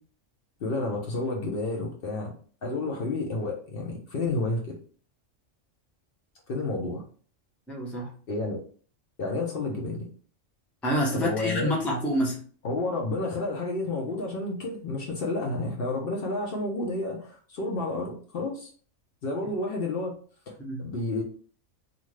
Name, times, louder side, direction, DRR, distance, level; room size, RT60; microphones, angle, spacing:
voice 1, 0.6-2.3 2.6-4.8 6.5-7.0 8.3-8.6 9.2-10.1 11.1-11.7 12.6-18.7 19.2-20.2 20.5-21.2, left 2 dB, 55° left, -1 dB, 0.7 m, -30 dB
voice 2, 7.7-8.1 10.8-12.4 20.6-20.8, equal, ahead, -1 dB, 0.5 m, -27 dB
2.5 x 2.5 x 3.1 m, 0.43 s
omnidirectional pair, 1.3 m